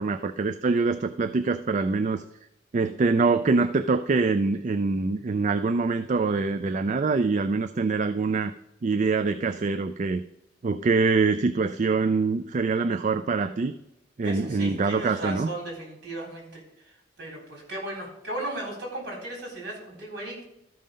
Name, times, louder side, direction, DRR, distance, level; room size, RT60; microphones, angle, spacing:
voice 1, 0.0-2.2 2.7-8.5 8.8-10.2 10.6-13.7 14.2-15.5, right 4 dB, 40° right, 10 dB, 0.4 m, -24 dB
voice 2, 14.2-20.5, right 1 dB, 55° right, -1 dB, 3.9 m, -36 dB
13.0 x 5.5 x 5.2 m, 0.85 s
head